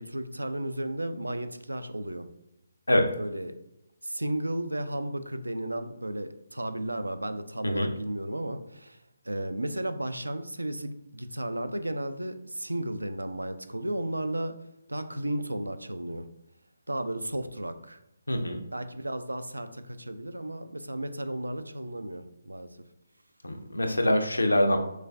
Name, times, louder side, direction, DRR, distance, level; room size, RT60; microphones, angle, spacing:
voice 1, 0.0-2.3 3.2-3.6 4.0-9.0 9.2-14.6 14.9-16.3 16.9-18.0 18.7-22.7, right 1 dB, 85° right, 10 dB, 0.4 m, -34 dB
voice 2, 18.3-18.6 23.4-24.8, left 1 dB, 80° left, 5 dB, 0.6 m, -24 dB
6.1 x 2.3 x 2.5 m, 0.87 s
figure-of-eight pair, 145°, 0 cm